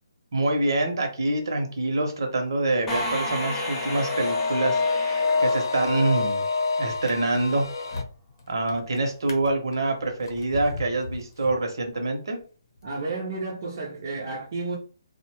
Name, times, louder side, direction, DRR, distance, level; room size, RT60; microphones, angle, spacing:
voice 1, 0.3-6.4 6.8-7.7 8.5-12.4, right 2 dB, 65° right, 0.8 m, -26 dB
sound 1, 2.9-6.5, equal, 10° left, 0.5 m, -33 dB
sound 2, 3.3-8.0, left 4 dB, 65° left, 0.4 m, -27 dB
Drawer open or close, 6.9-12.1 12.8-12.9, left 3 dB, 50° left, 0.8 m, -40 dB
voice 2, 12.8-14.8, right 3 dB, 45° right, 0.6 m, -31 dB
2.6 x 2.1 x 2.9 m
hypercardioid pair, 160°, 2 cm